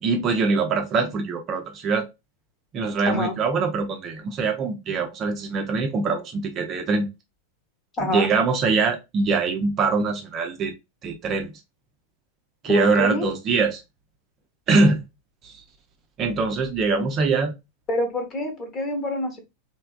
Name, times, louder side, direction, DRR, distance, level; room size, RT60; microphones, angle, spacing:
voice 1, 0.0-2.1 2.7-7.1 8.1-10.7 11.0-11.5 12.6-13.8 14.7-15.0 15.4-15.5 16.2-17.5, right 4 dB, 30° right, 0.6 m, -23 dB
voice 2, 8.0-8.3 12.7-13.3 17.9-19.4, left 1 dB, 30° left, 1.0 m, -26 dB
3.3 x 2.7 x 2.4 m
figure-of-eight pair, 90°, 0 cm